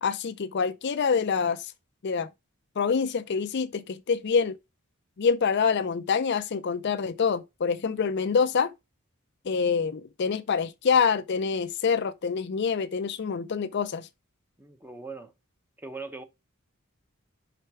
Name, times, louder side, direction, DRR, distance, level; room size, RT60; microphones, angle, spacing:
voice 1, 0.0-1.7 2.0-2.3 2.8-4.5 5.2-8.7 9.5-14.1, left 6 dB, 50° left, 0.4 m, -26 dB
voice 2, 14.6-15.3 15.8-16.2, right 3 dB, 10° right, 0.8 m, -40 dB
5.7 x 4.4 x 4.7 m
head